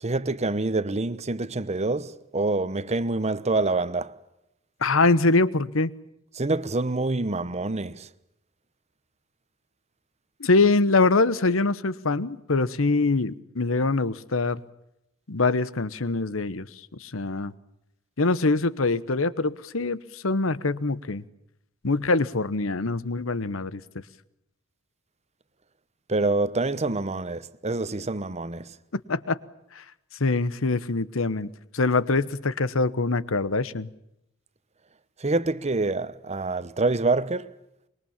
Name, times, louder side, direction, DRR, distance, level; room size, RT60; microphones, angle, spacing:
voice 1, 0.0-4.1 6.3-8.1 26.1-28.7 35.2-37.5, right 2 dB, 35° right, 1.0 m, -26 dB
voice 2, 4.8-5.9 10.4-14.6 15.3-16.7 17.0-17.5 18.2-21.2 21.8-23.8 29.1-29.4 29.7-29.8 30.2-33.9, left 3 dB, 75° left, 1.1 m, -24 dB
25.0 x 22.0 x 7.3 m
head